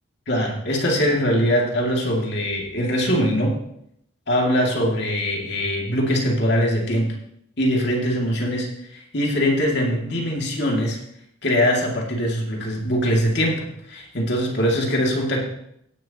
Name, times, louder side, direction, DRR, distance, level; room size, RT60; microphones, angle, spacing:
voice 1, 0.3-3.6 4.3-7.1 7.6-11.0 11.4-15.4, equal, 55° left, -1 dB, 2.5 m, -22 dB
16.5 x 10.5 x 3.0 m, 0.74 s
head